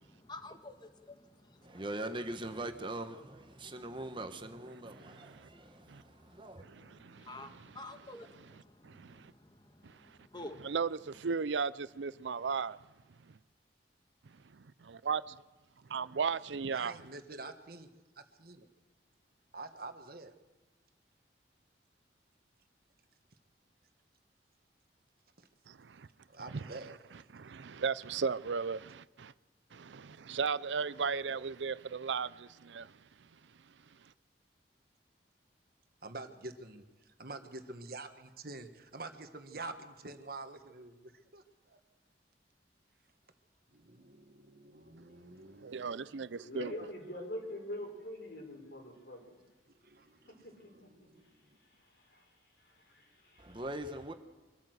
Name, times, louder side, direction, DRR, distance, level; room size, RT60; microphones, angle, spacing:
voice 1, 0.1-1.8 3.5-4.2 4.5-10.7, left 2 dB, 25° left, 1.5 m, -52 dB
voice 2, 1.6-6.6 53.4-54.1, right 1 dB, 25° right, 1.1 m, -42 dB
voice 3, 4.9-5.5 5.9-6.0 6.6-7.4 8.8-9.3 9.8-10.2 10.6-12.8 14.5-15.4 15.9-16.9 25.7-26.1 27.3-29.3 29.7-33.0 45.6-46.7, right 5 dB, 85° right, 0.5 m, -36 dB
voice 4, 16.7-17.9 18.1-18.7 19.5-20.3 25.4-25.5 26.3-27.0 27.4-27.6 36.0-41.8 43.7-46.3 49.8-51.6, right 3 dB, 55° right, 1.6 m, -47 dB
voice 5, 46.4-49.4 50.3-53.7, left 1 dB, 60° left, 5.7 m, -45 dB
24.5 x 13.5 x 8.0 m
head